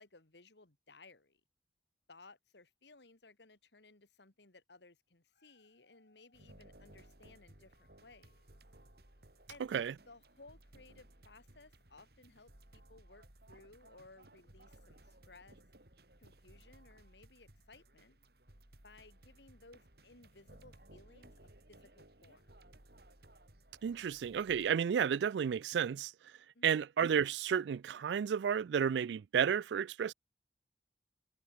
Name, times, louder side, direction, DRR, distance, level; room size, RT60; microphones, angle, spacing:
voice 1, 0.0-1.4 2.1-8.5 9.5-9.7 10.0-15.6 16.2-18.2 18.8-21.4 21.7-22.5 26.5-26.8, left 3 dB, 75° left, 2.3 m, -60 dB
Dog, 5.1-10.4 11.0-11.1, left 3 dB, 60° left, 6.3 m, -77 dB
sound 1, 6.3-24.7, right 1 dB, 60° right, 3.6 m, -60 dB
voice 2, 23.8-26.1 26.6-30.1, right 7 dB, 75° right, 0.3 m, -32 dB
head